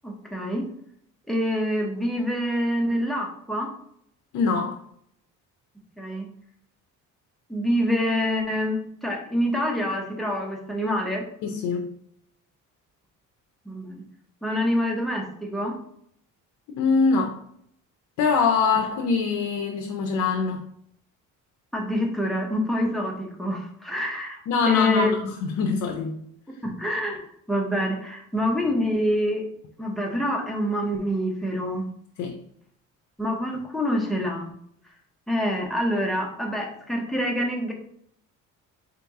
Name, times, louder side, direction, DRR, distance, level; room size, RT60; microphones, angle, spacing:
voice 1, 0.0-0.7 1.3-3.7 6.0-6.3 7.5-11.2 13.7-14.0 14.4-15.7 21.7-24.4 24.7-25.1 26.6-27.2 27.5-29.4 29.8-31.8 33.2-34.5 35.3-37.7, equal, ahead, 0.6 m, -26 dB
voice 2, 4.3-4.8 11.4-11.9 16.7-17.4 18.2-20.6 24.5-26.2 32.2-32.4, left 4 dB, 60° left, 0.6 m, -24 dB
3.9 x 2.9 x 3.5 m
cardioid pair, 160°, 32 cm